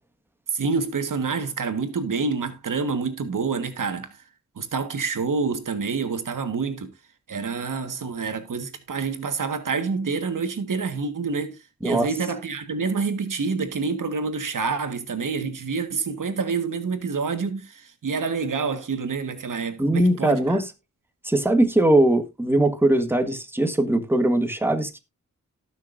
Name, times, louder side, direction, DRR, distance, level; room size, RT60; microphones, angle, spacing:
voice 1, 0.5-4.2 4.5-6.9 7.3-20.6, right 4 dB, 90° right, 1.6 m, -27 dB
voice 2, 19.8-20.7 21.2-25.0, right 1 dB, 5° right, 1.6 m, -20 dB
18.5 x 6.2 x 2.6 m
wide cardioid pair, 75°, 31 cm